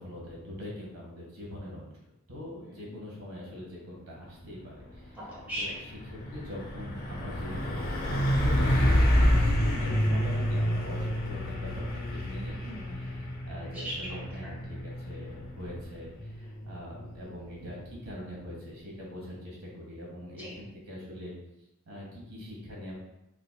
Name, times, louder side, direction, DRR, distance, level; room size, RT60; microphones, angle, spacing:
voice 1, 0.0-2.0 2.3-5.2 5.6-5.7 6.3-9.0 9.8-12.8 13.1-21.3 21.9-22.9, left 1 dB, 80° right, -3 dB, 1.3 m, -43 dB
voice 2, 2.5-2.9 5.1-5.9 9.2-9.5 12.6-13.1 13.6-14.6 20.4-20.6, equal, 10° right, -7 dB, 1.3 m, -40 dB
Truck, 4.8-5.1 5.4-18.0, equal, 45° left, 0.6 m, -29 dB
3.8 x 3.2 x 2.3 m, 0.89 s
head